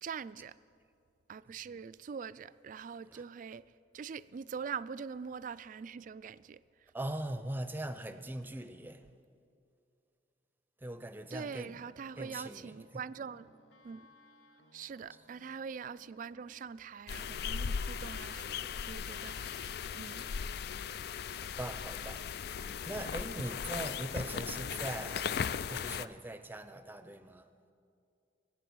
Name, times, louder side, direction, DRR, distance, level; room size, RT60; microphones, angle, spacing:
voice 1, 0.0-0.6 1.3-3.7 3.9-6.9 11.3-13.6 13.8-14.1 14.7-20.3 21.2-21.4, right 6 dB, 50° right, 0.3 m, -43 dB
voice 2, 6.9-9.0 10.8-11.8 12.2-13.0 21.4-22.3 22.8-27.5, right 1 dB, 10° right, 0.6 m, -41 dB
sound 1, 11.2-16.7, left 1 dB, 90° left, 1.2 m, -63 dB
sound 2, 17.1-26.1, left 7 dB, 60° left, 0.4 m, -38 dB
23.0 x 8.7 x 6.2 m
head